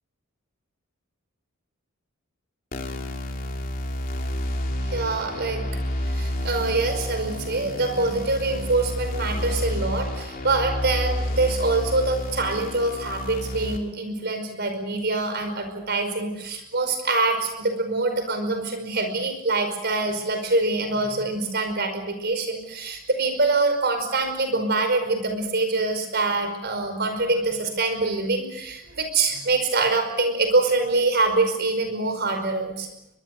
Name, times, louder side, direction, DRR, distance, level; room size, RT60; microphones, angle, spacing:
sound 1, 2.7-13.8, left 1 dB, 40° left, 3.3 m, -30 dB
voice 1, 4.8-5.8 6.0-32.9, right 3 dB, 50° right, 7 dB, 5.2 m, -25 dB
23.0 x 22.5 x 6.7 m, 0.90 s
head